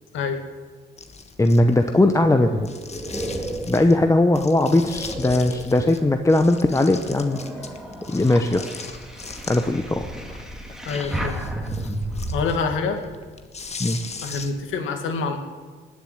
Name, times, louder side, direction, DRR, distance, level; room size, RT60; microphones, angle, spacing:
sound 1, 1.0-2.0 2.6-4.0 4.3-6.0 6.3-9.8 10.2-14.7, left 4 dB, 35° left, 1.6 m, -39 dB
voice 1, 1.4-2.7 3.7-7.4 8.1-8.7 9.5-10.1 13.8-14.0, left 2 dB, 15° left, 6 dB, 0.9 m, -19 dB
sound 2, 2.4-6.3 6.8-12.4, right 1 dB, 5° right, 2.4 m, -33 dB
voice 2, 10.9-11.4 12.3-13.0 14.2-15.4, left 4 dB, 80° left, 5 dB, 2.1 m, -26 dB
18.5 x 7.4 x 9.8 m, 1.4 s
cardioid pair, 90°, 20 cm